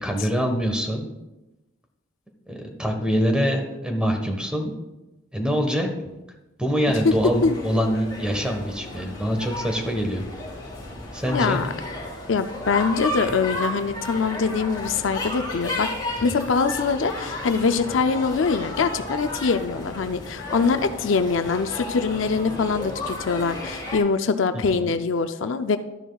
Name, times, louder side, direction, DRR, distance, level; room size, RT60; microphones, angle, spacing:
voice 1, 0.0-1.1 2.5-4.7 5.3-5.9 6.6-10.2 11.1-11.6 24.7-24.9, equal, 5° right, 4 dB, 1.3 m, -24 dB
sound 1, 6.9-24.0, left 1 dB, 25° left, 2.8 m, -33 dB
voice 2, 11.3-11.7 12.3-15.9 16.2-25.8, left 5 dB, 70° left, 9 dB, 0.5 m, -23 dB
12.5 x 10.0 x 2.4 m, 1.0 s
head